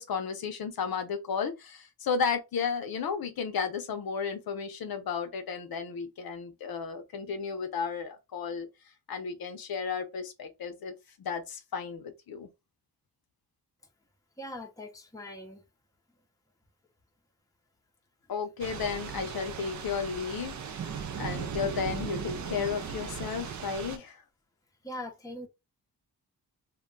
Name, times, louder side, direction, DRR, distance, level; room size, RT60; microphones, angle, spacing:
voice 1, 0.0-8.7 9.1-10.9 11.2-12.5 18.3-20.9 21.2-24.2, left 6 dB, 60° left, 0.6 m, -33 dB
voice 2, 14.4-15.6 24.8-25.5, left 1 dB, 10° left, 0.6 m, -41 dB
Thunder / Rain, 18.6-24.0, right 6 dB, 50° right, 0.5 m, -37 dB
2.3 x 2.2 x 3.7 m
wide cardioid pair, 115°, 40 cm